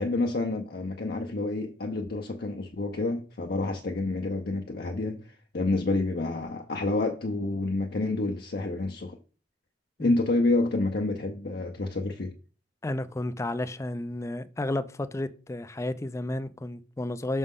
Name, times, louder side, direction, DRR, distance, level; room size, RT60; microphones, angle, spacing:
voice 1, 0.0-9.2 10.0-12.3, left 2 dB, 60° left, 0.7 m, -28 dB
voice 2, 12.8-17.4, left 1 dB, 15° left, 0.4 m, -32 dB
6.1 x 5.3 x 3.7 m
head